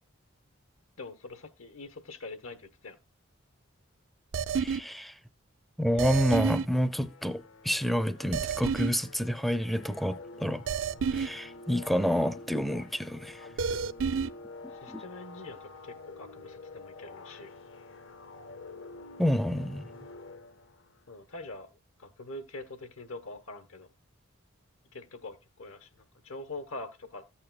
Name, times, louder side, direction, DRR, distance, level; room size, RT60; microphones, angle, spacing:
voice 1, 1.0-3.0 14.7-17.5 21.1-21.7 22.0-23.9 24.9-25.9 26.2-27.2, left 2 dB, 85° left, 1.1 m, -44 dB
sound 1, 4.3-4.8 6.0-6.7 8.3-8.9 10.7-11.3 13.6-14.3, right 6 dB, 70° right, 0.4 m, -29 dB
voice 2, 4.6-5.1 5.8-10.6 11.1-13.5 14.9-15.0 19.2-19.9, equal, ahead, 0.5 m, -29 dB
sound 2, 6.9-21.0, left 3 dB, 70° left, 0.8 m, -48 dB
14.0 x 8.7 x 2.2 m
head